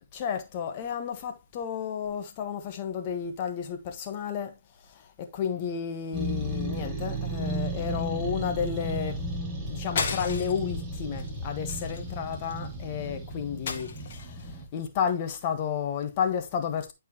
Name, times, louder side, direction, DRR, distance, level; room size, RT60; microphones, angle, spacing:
voice 1, 0.1-4.5 5.2-9.2 9.7-16.9, left 7 dB, 35° left, 1.3 m, -32 dB
sound 1, 6.1-14.6, right 1 dB, 15° right, 2.6 m, -34 dB
sound 2, 10.0-10.7 11.2-11.4 11.7-12.7 13.7-14.4, left 5 dB, 55° left, 1.8 m, -34 dB
12.0 x 4.7 x 3.0 m
hypercardioid pair, 145°, 0 cm